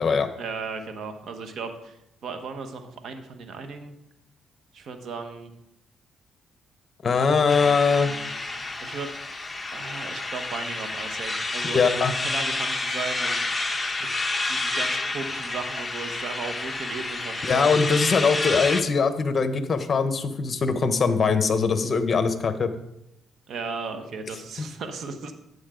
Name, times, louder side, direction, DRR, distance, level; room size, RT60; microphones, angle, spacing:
voice 1, 0.4-3.9 4.7-5.5 7.6-9.1 9.7-13.5 14.0-14.1 14.4-17.7 23.5-25.3, right 4 dB, 65° right, 7 dB, 1.4 m, -36 dB
voice 2, 7.0-8.1 11.6-12.1 17.4-22.7 24.6-24.7, left 5 dB, 40° left, 9 dB, 1.1 m, -22 dB
sound 1, 7.5-18.8, left 2 dB, 20° left, 1.0 m, -29 dB
12.0 x 8.4 x 3.9 m, 0.83 s
cardioid pair, 90°, 0 cm